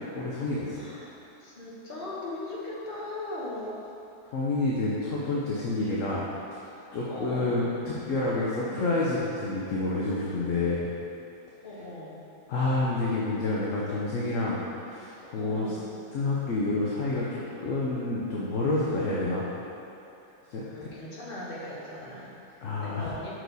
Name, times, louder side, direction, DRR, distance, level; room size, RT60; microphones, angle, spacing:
voice 1, 0.1-0.8 4.3-6.3 6.9-10.9 12.5-15.7 16.1-19.4 20.5-20.9 22.6-23.0, left 2 dB, 60° left, -6 dB, 1.0 m, -28 dB
voice 2, 0.7-3.8 6.6-6.8 7.1-7.7 8.5-8.9 11.6-12.2 15.4-15.9 18.8-19.3 20.3-23.3, left 1 dB, 35° left, -6 dB, 1.2 m, -39 dB
6.5 x 4.6 x 4.0 m, 2.7 s
omnidirectional pair, 1.8 m